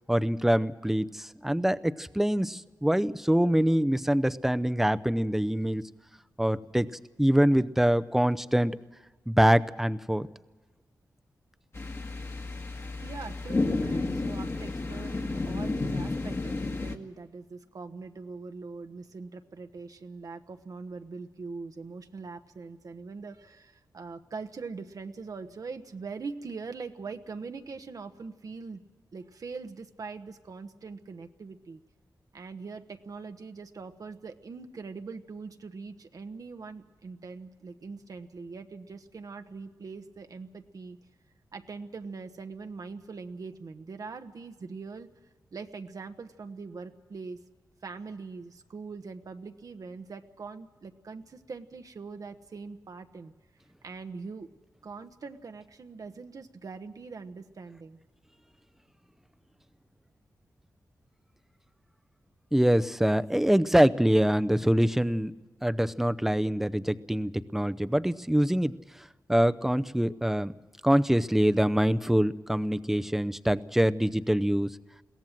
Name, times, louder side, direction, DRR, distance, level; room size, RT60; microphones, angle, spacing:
voice 1, 0.1-5.8 6.4-6.9 7.2-8.8 9.3-10.3 62.5-65.3 65.6-68.8 69.3-70.5 70.8-74.7, equal, 5° right, 13 dB, 0.7 m, -24 dB
sound 1, 11.7-17.0, left 3 dB, 40° left, 1.6 m, -31 dB
voice 2, 13.0-28.8 29.1-31.8 32.3-41.0 41.5-45.1 45.5-47.4 47.8-53.3 53.8-54.5 54.8-58.0, right 4 dB, 60° right, 7 dB, 1.1 m, -42 dB
22.0 x 17.0 x 7.5 m, 1.3 s
wide cardioid pair, 90°, 7 cm